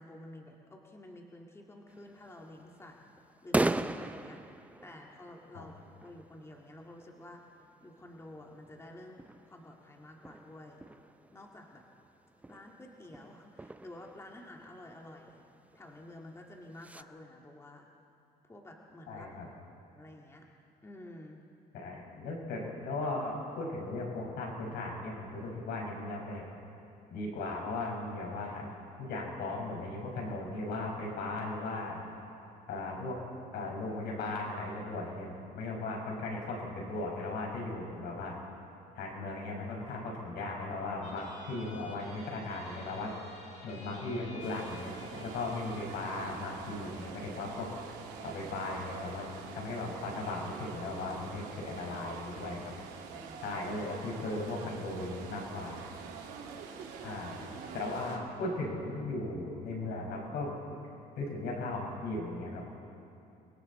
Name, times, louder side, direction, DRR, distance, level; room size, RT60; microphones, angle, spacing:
voice 1, 0.0-3.0 3.4-4.4 4.8-7.4 7.8-9.2 9.5-10.8 11.3-11.9 12.5-15.4 15.7-17.9 18.4-19.3 19.9-20.5 20.8-21.4 51.4-51.5 53.1-54.3 56.9-57.3 57.6-57.9, left 1 dB, 15° left, 0 dB, 1.9 m, -50 dB
sound 1, 1.9-17.0, right 2 dB, 10° right, 0.5 m, -40 dB
voice 2, 19.1-19.5 21.7-26.4 27.1-32.0 32.7-33.2 33.5-38.4 39.0-43.1 43.6-47.7 48.2-52.7 53.4-55.9 57.0-57.4 57.7-60.6 61.2-62.6, left 2 dB, 75° left, 0 dB, 5.4 m, -37 dB
sound 2, 41.0-48.0, left 2 dB, 45° left, 4.6 m, -54 dB
sound 3, 44.4-58.2, right 6 dB, 90° right, 2.9 m, -46 dB
29.5 x 22.0 x 4.2 m, 2.7 s
cardioid pair, 110°, 17 cm